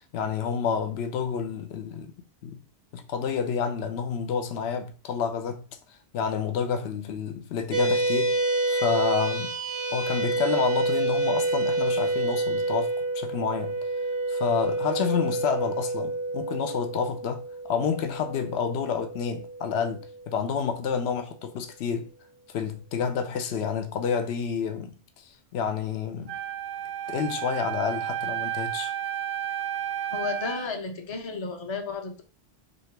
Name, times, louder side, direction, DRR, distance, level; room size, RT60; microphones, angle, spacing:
voice 1, 0.0-2.1 2.4-2.6 2.9-5.6 6.1-8.4 8.7-9.6 9.9-13.8 14.3-22.1 22.5-25.0 25.5-26.4 27.1-28.9, left 6 dB, 75° left, 0.8 m, -29 dB
sound 1, 7.7-20.4, right 2 dB, 45° right, 0.4 m, -28 dB
Wind instrument woodwind instrument, 26.3-30.7, right 11 dB, 80° right, 0.9 m, -32 dB
voice 2, 30.1-32.2, left 4 dB, 35° left, 0.5 m, -33 dB
2.8 x 2.8 x 4.4 m
omnidirectional pair, 1.1 m